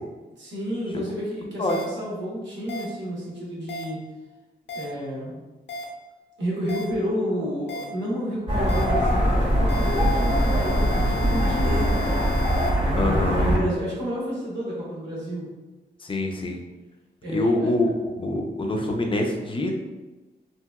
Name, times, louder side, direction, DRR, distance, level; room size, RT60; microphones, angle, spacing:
voice 1, 0.4-4.0 4.7-5.4 6.4-12.2 12.8-15.5 17.2-17.7, equal, 90° right, -5 dB, 1.1 m, -30 dB
sound 1, 1.7-1.8 2.7-2.8 3.7-3.8 4.7-4.8 5.7-5.8 6.7-6.8 7.7-7.8 8.7-8.8 9.7-12.7, left 4 dB, 70° left, 0.6 m, -34 dB
sound 2, 8.5-13.6, equal, 25° right, 0.9 m, -22 dB
voice 2, 13.0-13.5 16.0-16.6 17.3-17.9 18.2-19.7, left 2 dB, 30° left, 2 dB, 0.5 m, -25 dB
2.9 x 2.8 x 2.2 m, 1.2 s
cardioid pair, 85°, 18 cm